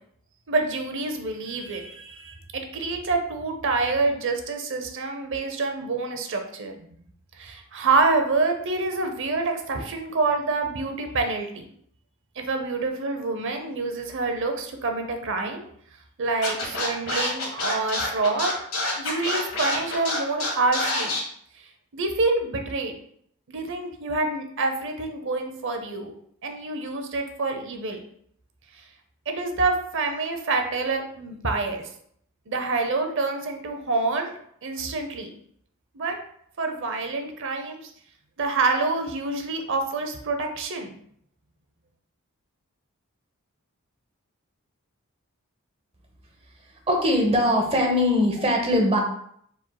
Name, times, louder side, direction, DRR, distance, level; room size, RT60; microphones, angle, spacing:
voice 1, 0.5-6.8 7.4-11.6 12.4-15.7 16.2-18.5 19.0-21.1 21.9-22.9 23.5-26.1 26.4-28.0 29.3-31.9 32.5-35.3 35.9-36.2 36.6-37.9 38.4-41.0, right 3 dB, 55° right, 5 dB, 0.7 m, -27 dB
Scratching (performance technique), 16.4-21.2, left 2 dB, 65° left, 1.5 m, -27 dB
voice 2, 46.9-49.0, left 1 dB, 25° right, 2 dB, 0.8 m, -21 dB
4.8 x 4.4 x 2.2 m, 0.67 s
head